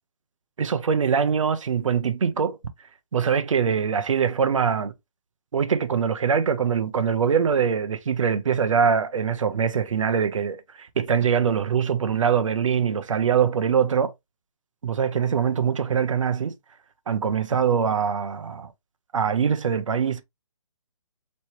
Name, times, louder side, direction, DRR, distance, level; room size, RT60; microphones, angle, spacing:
voice 1, 0.6-2.6 3.1-4.9 5.5-14.1 14.8-16.5 17.1-18.7 19.1-20.2, right 7 dB, 70° right, 0.9 m, -23 dB
4.3 x 3.2 x 2.9 m
hypercardioid pair, 150°, 17 cm